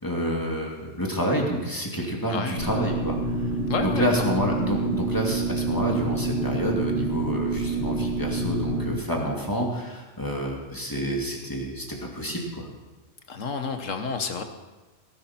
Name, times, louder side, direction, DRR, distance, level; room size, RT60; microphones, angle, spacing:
voice 1, 0.0-3.5 3.8-12.7, equal, 15° left, -1 dB, 2.4 m, -28 dB
sound 1, 2.6-9.0, right 2 dB, 45° left, 1.3 m, -27 dB
voice 2, 3.7-4.3 13.3-14.4, left 5 dB, 75° left, 7 dB, 1.5 m, -30 dB
17.5 x 11.5 x 4.4 m, 1.2 s
omnidirectional pair, 1.3 m